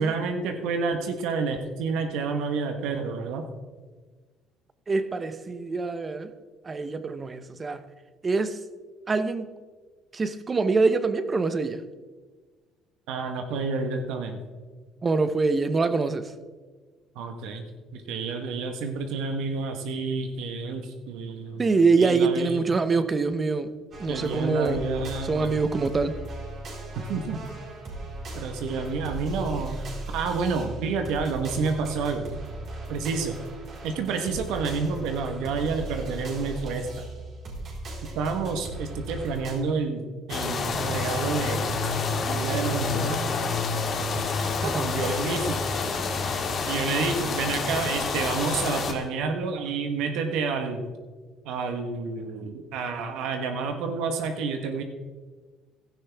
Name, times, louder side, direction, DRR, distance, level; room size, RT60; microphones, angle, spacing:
voice 1, 0.0-3.4 13.1-14.4 17.1-17.6 17.9-21.6 22.0-22.6 24.1-25.5 26.9-27.4 28.3-29.8 30.1-32.3 32.9-33.4 33.8-37.0 38.1-41.6 42.3-43.2 44.6-46.0 46.7-50.8 51.4-54.8, right 4 dB, 80° right, 5 dB, 1.3 m, -29 dB
voice 2, 4.9-6.3 6.6-7.8 8.2-8.6 9.1-9.5 10.1-11.8 15.0-16.3 21.6-23.7 24.0-24.8 25.2-26.2 44.6-44.9, right 4 dB, 25° right, 12 dB, 0.9 m, -24 dB
sound 1, 23.9-39.5, right 2 dB, 50° right, 4.3 m, -38 dB
sound 2, 40.3-48.9, left 4 dB, 45° left, 2.0 m, -28 dB
15.5 x 12.0 x 3.5 m, 1.4 s
cardioid pair, 100°, 0 cm